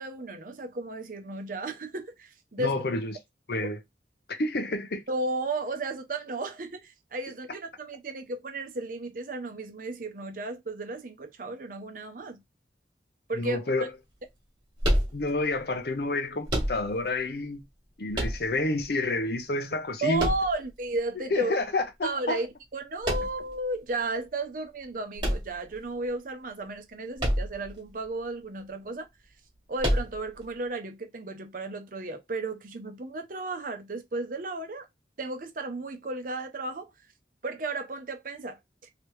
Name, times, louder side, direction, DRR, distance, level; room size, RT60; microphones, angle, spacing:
voice 1, 0.0-2.7 5.1-12.4 13.3-13.9 20.0-21.6 22.0-29.1 29.7-34.9 35.2-36.9 37.4-38.6, right 2 dB, 45° right, 0.7 m, -34 dB
voice 2, 2.6-3.1 3.5-3.8 4.3-5.0 13.4-13.9 15.1-17.6 18.0-20.3 21.3-22.4, left 2 dB, 55° left, 0.6 m, -29 dB
sound 1, 14.8-15.6 16.5-17.2 18.1-18.8 20.2-21.0 23.0-23.6 25.2-26.1 27.2-27.7 28.0-28.1 29.8-30.4, equal, 25° right, 1.3 m, -28 dB
3.3 x 2.9 x 3.1 m
head